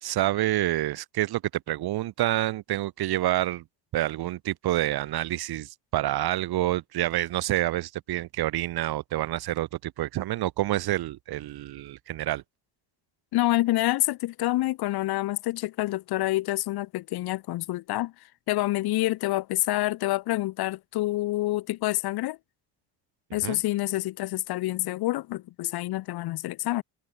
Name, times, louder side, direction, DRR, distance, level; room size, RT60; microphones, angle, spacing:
voice 1, 0.0-3.6 3.9-12.4 23.4-23.6, right 15 dB, 70° right, 2.3 m, -28 dB
voice 2, 13.3-18.1 18.5-22.4 23.3-26.8, left 17 dB, 70° left, 1.0 m, -27 dB
cardioid pair, 100°, 39 cm